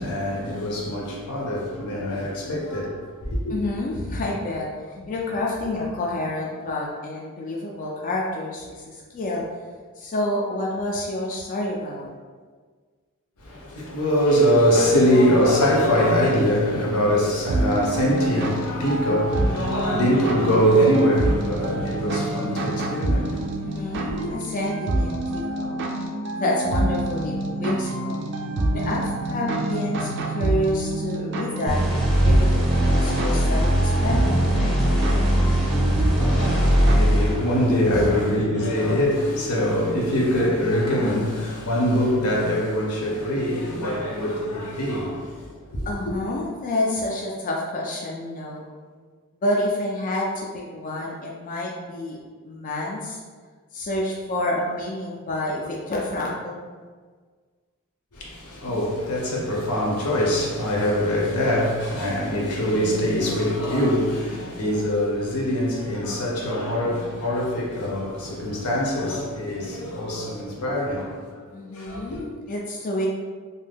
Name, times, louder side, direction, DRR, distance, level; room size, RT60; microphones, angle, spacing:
voice 1, 0.0-3.5 13.4-23.5 24.1-24.3 35.8-45.9 58.1-71.2 71.7-72.2, equal, 80° left, 0.7 m, -23 dB
voice 2, 3.5-9.4 10.0-12.1 23.6-25.8 26.3-28.2 28.7-31.8 32.2-34.5 37.8-38.2 45.9-48.7 49.4-52.2 52.4-53.2 53.7-56.6 59.3-59.4 71.5-73.1, left 1 dB, 35° left, 0.3 m, -28 dB
sound 1, 17.5-36.9, right 1 dB, 55° right, 0.4 m, -27 dB
sound 2, 31.7-38.1, equal, ahead, 0.7 m, -20 dB
2.6 x 2.2 x 3.4 m
head